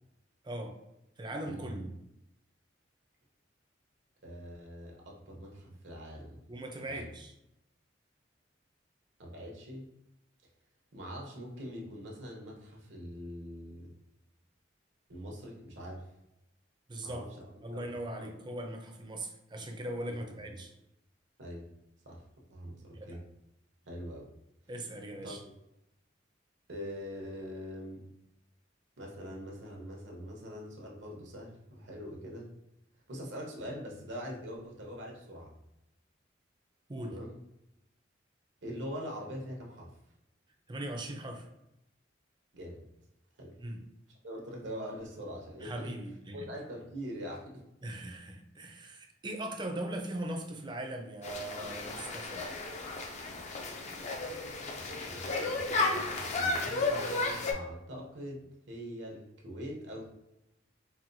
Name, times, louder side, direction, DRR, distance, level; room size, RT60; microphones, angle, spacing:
voice 1, 0.4-0.7 1.2-1.9 6.5-7.3 16.9-17.2 17.6-20.7 22.9-23.2 24.7-25.4 36.9-37.2 40.7-41.5 43.6-43.8 45.6-46.5 47.8-52.5, right 1 dB, 25° right, 3 dB, 0.5 m, -40 dB
voice 2, 1.4-1.9 4.2-6.4 6.8-7.0 9.2-9.9 10.9-13.9 15.1-16.0 17.0-17.5 17.7-17.8 18.2-18.3 20.4-20.5 21.4-21.6 22.1-22.2 22.5-23.2 23.9-24.3 25.2-25.5 26.7-28.0 29.0-32.5 33.1-35.5 37.1-37.3 38.6-39.9 42.5-42.8 43.4-43.5 44.2-45.7 46.3-47.6 54.7-60.0, equal, 80° right, -1 dB, 0.9 m, -43 dB
sound 1, 51.2-57.5, left 3 dB, 40° left, 0.4 m, -33 dB
4.2 x 2.2 x 2.6 m, 0.87 s
head